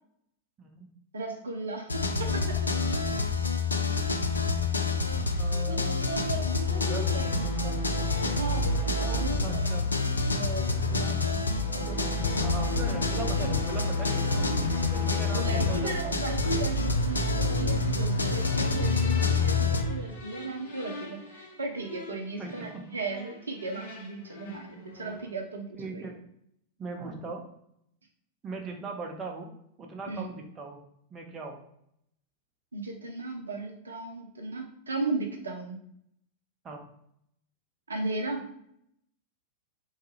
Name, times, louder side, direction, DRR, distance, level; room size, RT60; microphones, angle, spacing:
voice 1, 1.1-2.6 5.7-7.3 8.2-9.7 10.1-12.6 15.3-26.1 30.1-30.3 32.7-35.8 37.9-38.5, right 3 dB, 75° right, 3 dB, 0.4 m, -36 dB
sound 1, 1.9-19.8, left 3 dB, 80° left, 0.3 m, -28 dB
voice 2, 5.4-6.0 6.8-7.8 9.4-9.9 10.9-11.2 12.4-14.5 14.8-16.5 22.4-22.8 25.7-26.1 26.8-27.4 28.4-29.5 29.8-30.8 31.1-31.6 36.6-36.8, right 3 dB, 25° right, 2 dB, 0.6 m, -39 dB
sound 2, 6.3-25.3, left 2 dB, 60° left, 0.7 m, -36 dB
3.0 x 2.2 x 3.0 m, 0.73 s
figure-of-eight pair, 90°, 0 cm